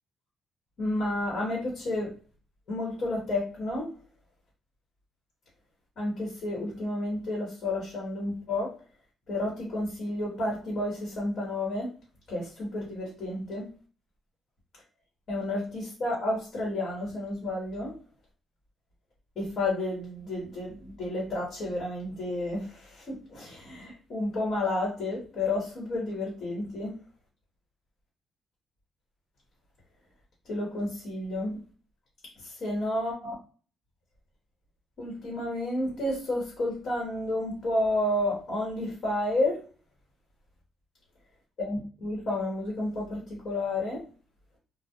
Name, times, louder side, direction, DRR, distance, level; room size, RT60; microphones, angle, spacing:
voice 1, 0.8-2.1 2.7-3.9 6.0-8.8 9.3-11.9 12.3-13.7 15.3-18.0 19.4-27.0 30.5-31.6 32.4-33.3 35.0-39.6 41.6-44.0, left 1 dB, 60° left, -3 dB, 1.1 m, -31 dB
2.3 x 2.1 x 2.8 m, 0.39 s
cardioid pair, 90°, 0 cm